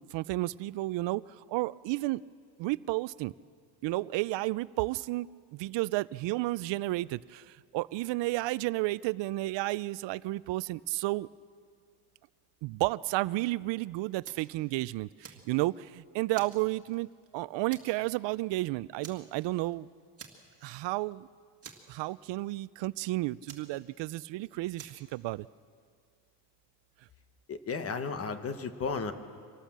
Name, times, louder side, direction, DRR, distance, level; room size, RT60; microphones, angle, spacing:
voice 1, 0.0-2.2 2.6-3.3 3.8-11.3 12.6-19.9 20.6-21.3 21.9-25.5, right 19 dB, 85° right, 19 dB, 0.5 m, -32 dB
Fire, 14.2-14.6 15.0-15.9 16.3-17.3 17.7-18.1 18.4-18.6 19.0-19.7 20.2-20.8 21.0-21.1 21.6-22.4 23.5-24.3 24.8-25.1, right 6 dB, 35° right, 1.9 m, -50 dB
voice 2, 27.5-29.1, left 5 dB, 35° left, 9 dB, 1.1 m, -34 dB
25.0 x 18.5 x 7.4 m, 2.1 s
cardioid pair, 170°, 42 cm